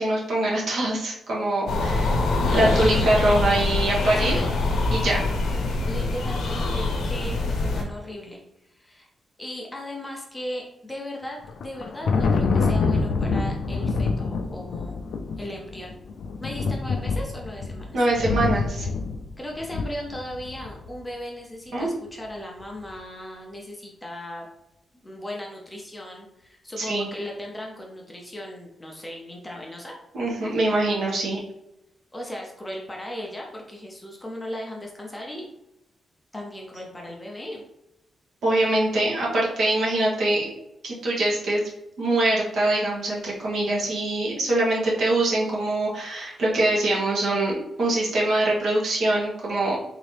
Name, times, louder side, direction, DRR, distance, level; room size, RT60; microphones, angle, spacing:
voice 1, 0.0-4.4 4.9-5.2 17.9-18.9 21.7-21.9 26.8-27.1 30.1-31.4 38.4-40.5 40.8-41.6 42.0-49.8, right 2 dB, 60° right, -4 dB, 1.2 m, -23 dB
sound 1, 1.7-7.8, left 2 dB, 75° left, 0.9 m, -24 dB
voice 2, 2.4-3.0 4.2-4.5 5.8-9.1 9.4-15.0 15.4-15.9 16.4-18.0 19.4-24.5 25.0-29.9 32.1-35.5 36.3-37.6, left 1 dB, 10° left, -1 dB, 0.6 m, -37 dB
Thunder, 11.4-20.9, left 4 dB, 60° left, 0.3 m, -26 dB
3.9 x 2.7 x 3.3 m, 0.86 s
wide cardioid pair, 175°, 0 cm